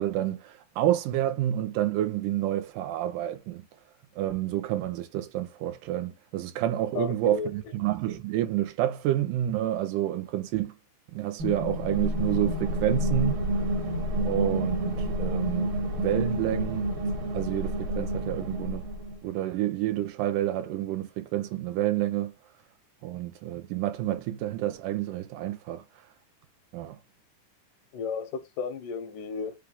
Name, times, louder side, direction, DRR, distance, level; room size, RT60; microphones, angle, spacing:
voice 1, 0.0-3.6 4.2-10.7 11.1-13.4 14.3-16.9 17.3-18.9 19.2-22.3 23.0-25.8 26.7-27.0, right 13 dB, 85° right, 2.1 m, -29 dB
voice 2, 7.0-7.5 27.9-29.6, left 5 dB, 85° left, 2.2 m, -33 dB
sound 1, 11.4-19.2, equal, 60° right, 1.5 m, -29 dB
5.1 x 2.3 x 3.6 m
omnidirectional pair, 3.7 m